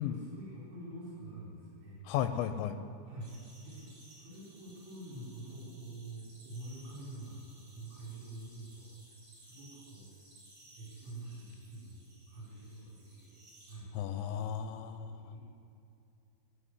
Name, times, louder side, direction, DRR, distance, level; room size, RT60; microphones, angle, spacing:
voice 1, 0.0-2.0 3.1-8.9 9.4-10.1 10.8-13.3 13.7-13.9 14.7-15.4, right 1 dB, 75° right, -8 dB, 6.2 m, -47 dB
voice 2, 2.1-2.8 13.9-15.2, left 10 dB, 90° left, 10 dB, 2.9 m, -34 dB
sound 1, 3.2-13.8, right 1 dB, 45° right, 5.1 m, -60 dB
16.0 x 5.6 x 9.9 m, 2.6 s
omnidirectional pair, 5.2 m